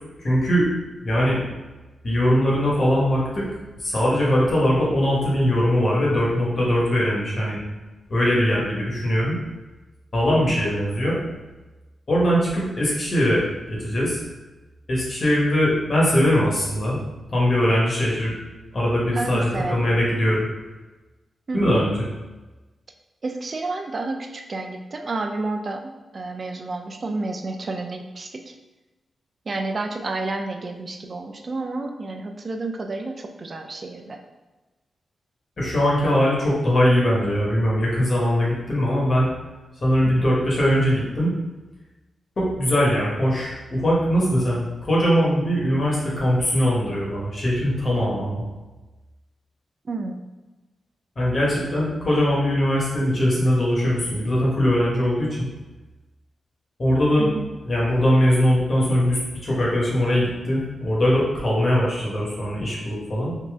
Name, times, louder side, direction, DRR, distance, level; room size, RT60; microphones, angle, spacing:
voice 1, 0.2-0.7 1.0-1.4 2.0-3.5 3.8-7.6 8.1-9.4 10.1-11.2 12.1-13.4 13.7-14.2 14.9-17.0 17.3-18.3 18.7-20.5 21.5-22.0 35.6-39.3 39.8-41.3 42.4-48.4 51.2-55.5 56.8-57.3 57.6-63.4, equal, 50° left, -5 dB, 1.3 m, -21 dB
voice 2, 19.2-19.9 21.5-21.8 23.2-28.5 29.5-34.2 40.2-40.3 49.8-50.2 57.2-57.5, right 3 dB, 50° right, 4 dB, 0.4 m, -30 dB
2.9 x 2.8 x 3.5 m, 1.1 s
cardioid pair, 60°, 0 cm